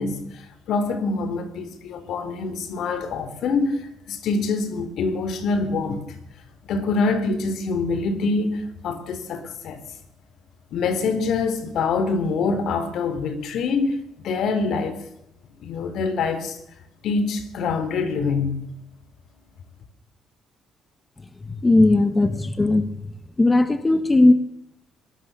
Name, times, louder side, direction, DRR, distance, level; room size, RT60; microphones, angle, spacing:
voice 1, 0.0-6.2 6.7-9.8 10.7-15.1 15.6-16.6 17.0-18.6, left 4 dB, 75° left, 3.6 m, -25 dB
voice 2, 21.5-22.9 23.4-24.3, left 2 dB, 20° left, 1.6 m, -17 dB
22.5 x 19.0 x 7.0 m
cardioid pair, 90°, 0 cm